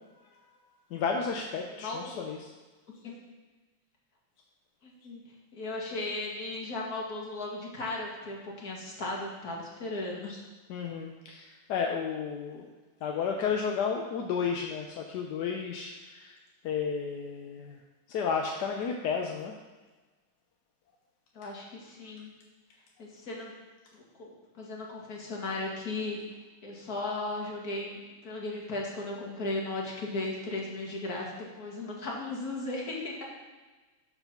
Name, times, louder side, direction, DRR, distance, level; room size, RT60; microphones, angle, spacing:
voice 1, 0.9-2.5 10.7-12.7 13.0-16.3 16.6-17.8 18.1-19.5, left 6 dB, 65° left, 2 dB, 1.2 m, -32 dB
voice 2, 1.8-2.3 3.0-3.1 4.8-5.2 5.5-10.4 21.3-22.3 23.0-23.5 23.9-26.2 26.6-28.0 28.2-33.2, left 2 dB, 45° left, -2 dB, 2.3 m, -36 dB
12.0 x 4.8 x 5.8 m, 1.3 s
omnidirectional pair, 2.3 m